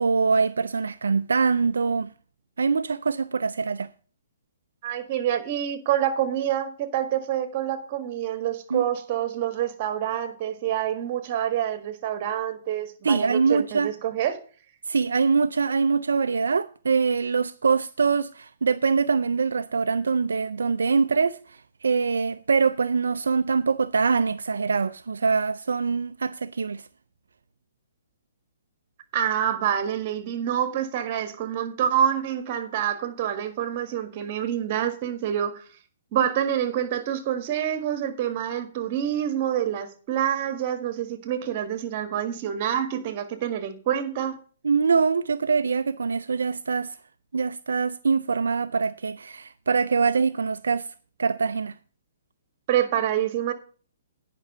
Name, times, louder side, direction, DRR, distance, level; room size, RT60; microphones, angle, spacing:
voice 1, 0.0-2.1 2.6-3.9 8.7-8.8 13.0-13.9 14.9-26.8 44.6-46.9 47.3-50.9 51.2-51.7, right 5 dB, 80° right, 0.4 m, -24 dB
voice 2, 4.8-14.4 29.1-35.6 36.1-44.4 52.7-53.5, right 10 dB, 40° right, 1.7 m, -27 dB
9.7 x 5.9 x 6.7 m
hypercardioid pair, 135°, 0 cm